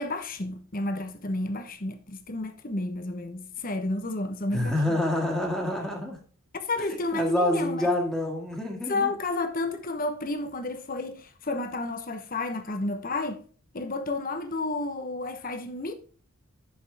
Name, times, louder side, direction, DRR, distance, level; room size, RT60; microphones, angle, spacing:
voice 1, 0.0-5.0 6.6-7.9 8.9-13.4 13.7-15.9, left 2 dB, 40° left, 1.0 m, -31 dB
voice 2, 4.5-6.2 7.1-9.1, left 1 dB, 5° left, 2.0 m, -27 dB
9.4 x 6.7 x 3.4 m
head